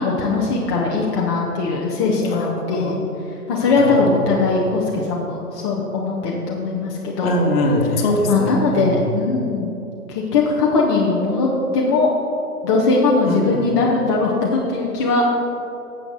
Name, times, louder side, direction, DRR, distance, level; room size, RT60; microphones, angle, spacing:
voice 1, 0.0-3.0 3.5-7.4 8.3-9.7 10.1-11.5 11.7-12.1 12.6-15.4, left 3 dB, 20° left, -4 dB, 0.5 m, -20 dB
voice 2, 2.3-2.9 3.8-3.9 7.2-8.9 13.3-13.6, left 1 dB, 40° left, 1 dB, 1.5 m, -21 dB
11.5 x 7.8 x 4.0 m, 2.9 s
hypercardioid pair, 140°, 46 cm